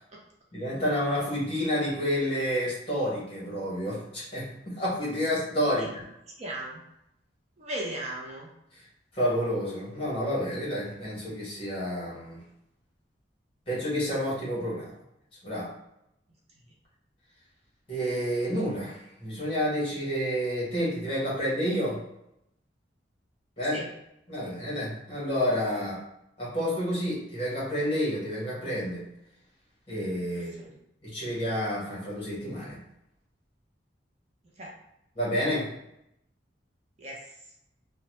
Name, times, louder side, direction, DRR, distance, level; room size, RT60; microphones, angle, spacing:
voice 1, 0.5-6.0 9.1-12.4 13.7-14.9 15.4-15.7 17.9-22.0 23.6-23.8 24.3-26.0 26.4-29.0 29.9-30.7 31.0-32.8 35.2-35.7, equal, 30° left, -6 dB, 1.2 m, -29 dB
voice 2, 6.4-6.8 7.6-8.5 23.7-23.9 30.3-30.7 34.6-34.7 37.0-37.3, right 1 dB, 35° right, -2 dB, 0.5 m, -37 dB
2.9 x 2.1 x 3.0 m, 0.82 s
head